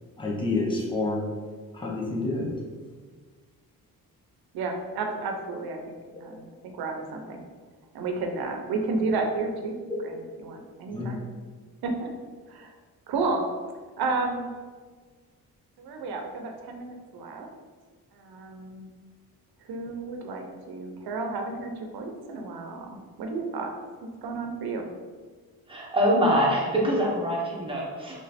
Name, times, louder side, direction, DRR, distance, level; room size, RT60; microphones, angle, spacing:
voice 1, 0.2-1.3 1.7-2.6 9.9-10.0 10.9-11.1, left 2 dB, 15° left, -3 dB, 0.9 m, -28 dB
voice 2, 4.5-6.0 6.2-7.4 7.9-11.2 11.8-12.1 12.5-12.7 13.1-13.4 14.0-14.5 15.8-17.5 18.1-18.9 19.6-23.7 24.2-24.8, right 3 dB, 85° right, 3 dB, 0.7 m, -32 dB
voice 3, 25.7-28.2, equal, 15° right, -4 dB, 1.1 m, -24 dB
3.3 x 3.1 x 4.1 m, 1.5 s
cardioid pair, 105°, 37 cm